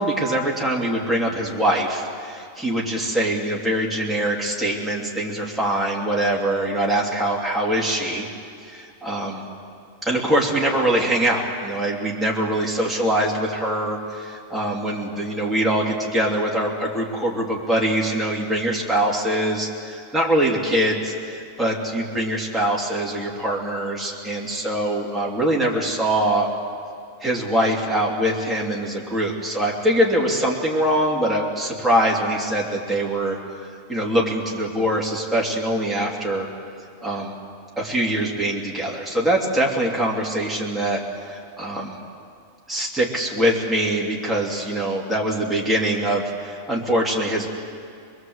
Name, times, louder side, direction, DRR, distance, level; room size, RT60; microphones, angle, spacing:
voice 1, 0.0-8.3 8.7-9.4 10.0-26.5 27.2-33.4 33.9-36.5 37.0-37.3 37.8-42.0 42.7-47.5, right 1 dB, ahead, -3 dB, 2.7 m, -23 dB
24.5 x 22.0 x 8.0 m, 2.4 s
omnidirectional pair, 1.4 m